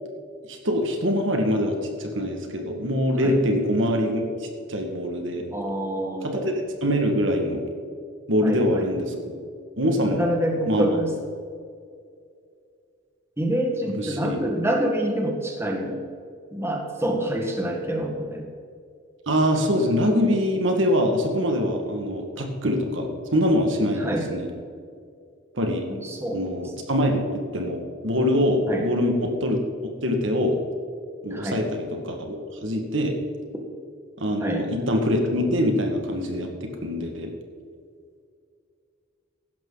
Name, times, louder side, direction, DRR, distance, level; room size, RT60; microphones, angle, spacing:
voice 1, 0.5-5.4 6.2-7.6 8.3-9.1 9.8-10.2 10.7-10.9 14.0-14.4 19.3-24.5 25.5-25.9 26.3-29.6 30.0-30.6 31.2-33.1 34.2-37.3, equal, 75° right, 3 dB, 1.9 m, -24 dB
voice 2, 5.5-6.5 8.4-8.8 10.2-11.1 13.4-16.0 16.5-18.5 24.0-24.3 25.9-26.4 28.7-28.9 31.3-31.6 34.4-34.6, right 1 dB, 15° right, 0 dB, 1.6 m, -27 dB
16.0 x 11.5 x 4.1 m, 2.3 s
head